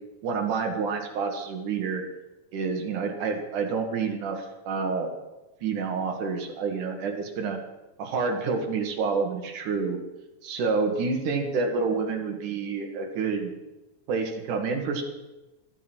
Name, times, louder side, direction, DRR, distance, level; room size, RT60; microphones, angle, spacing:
voice 1, 0.2-2.0 2.5-5.2 5.6-7.6 8.0-10.0 10.4-13.5 14.1-15.0, right 4 dB, 80° right, 3 dB, 3.3 m, -28 dB
13.0 x 12.0 x 6.3 m, 1.1 s
omnidirectional pair, 3.6 m